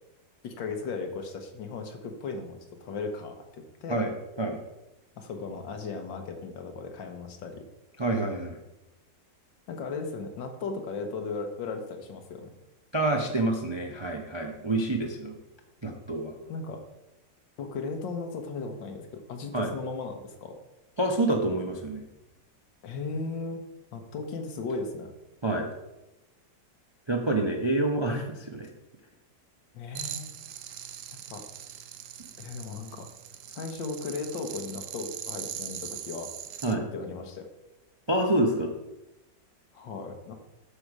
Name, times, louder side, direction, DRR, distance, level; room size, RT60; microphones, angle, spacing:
voice 1, 0.4-4.0 5.2-7.6 9.7-12.5 16.5-16.8 17.6-20.6 22.8-23.7 23.9-25.1 29.7-30.4 31.3-31.4 32.4-33.1 33.6-36.3 36.7-37.5 39.7-40.3, left 4 dB, 85° left, 5 dB, 1.8 m, -36 dB
voice 2, 3.9-4.6 8.0-8.6 12.9-15.4 15.8-16.3 19.5-19.7 21.0-22.0 25.4-25.7 27.1-28.7 36.6-36.9 38.1-38.7, right 2 dB, 40° right, 2 dB, 0.4 m, -27 dB
sound 1, 30.0-36.8, right 10 dB, 70° right, 0.7 m, -41 dB
8.5 x 6.6 x 4.8 m, 0.96 s
omnidirectional pair, 2.0 m